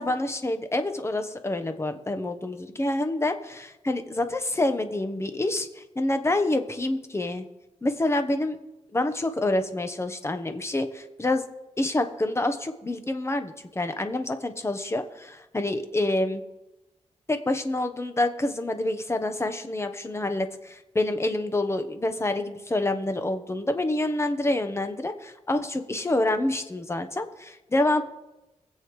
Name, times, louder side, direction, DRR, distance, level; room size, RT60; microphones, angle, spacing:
voice 1, 0.0-7.4 7.8-8.6 8.9-11.4 11.8-16.4 17.3-28.0, left 2 dB, 20° left, 8 dB, 1.1 m, -27 dB
23.0 x 7.8 x 3.2 m, 0.99 s
wide cardioid pair, 85°, 12 cm